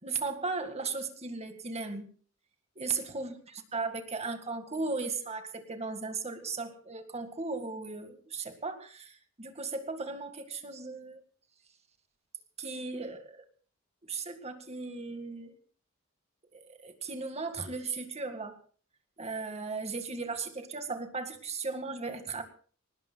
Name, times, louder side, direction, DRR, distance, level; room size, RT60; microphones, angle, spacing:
voice 1, 0.0-2.1 2.8-3.3 3.7-11.2 12.6-13.4 14.0-15.5 16.5-18.6 19.2-22.4, right 4 dB, 30° right, 7 dB, 2.0 m, -36 dB
24.0 x 19.5 x 2.3 m, 0.42 s
head